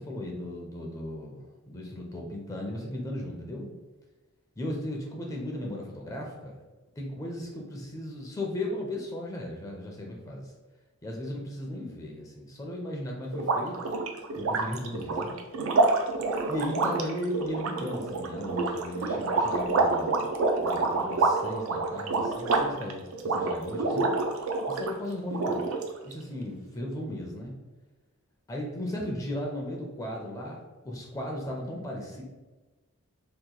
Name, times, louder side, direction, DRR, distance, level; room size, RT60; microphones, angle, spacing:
voice 1, 0.0-3.7 4.6-6.6 7.0-10.5 11.0-13.7 14.3-15.4 16.5-20.2 20.6-24.1 24.7-25.6 26.0-27.5 28.5-32.2, left 1 dB, 15° left, -1 dB, 0.4 m, -36 dB
sound 1, 13.3-24.9 25.3-26.1, right 3 dB, 85° right, 0.4 m, -27 dB
2.9 x 2.3 x 3.7 m, 1.2 s
head